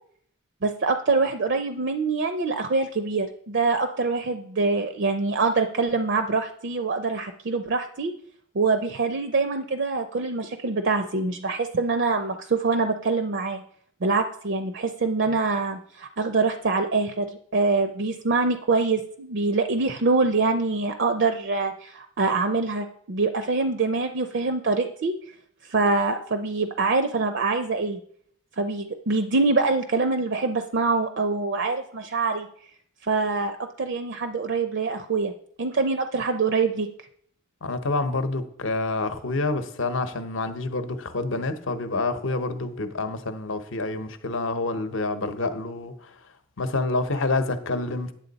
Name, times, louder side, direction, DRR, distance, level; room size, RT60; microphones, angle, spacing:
voice 1, 0.6-8.1 8.5-13.6 14.0-25.1 25.7-28.0 28.6-32.5 33.0-35.3 35.6-36.9, right 3 dB, 55° right, 0.5 m, -24 dB
voice 2, 37.6-46.1 46.6-48.1, left 3 dB, 60° left, 0.8 m, -28 dB
9.0 x 7.4 x 4.0 m
head